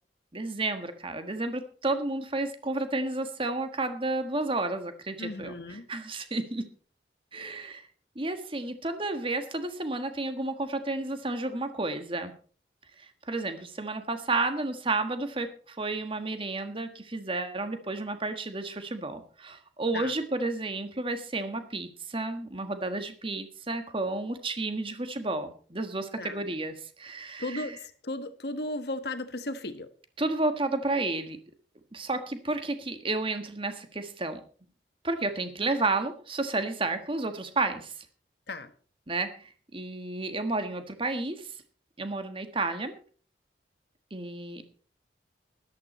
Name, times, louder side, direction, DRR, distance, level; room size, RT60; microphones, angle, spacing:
voice 1, 0.3-6.7 7.3-7.8 8.1-12.3 13.0-27.8 30.2-31.4 31.9-34.4 35.0-38.0 39.1-41.5 42.0-42.9 44.1-44.6, right 2 dB, 30° right, 8 dB, 1.5 m, -31 dB
voice 2, 5.2-5.9 19.9-20.1 26.2-26.4 27.4-29.9 38.5-38.7, left 2 dB, 60° left, 10 dB, 1.4 m, -35 dB
13.5 x 12.0 x 4.3 m, 0.42 s
head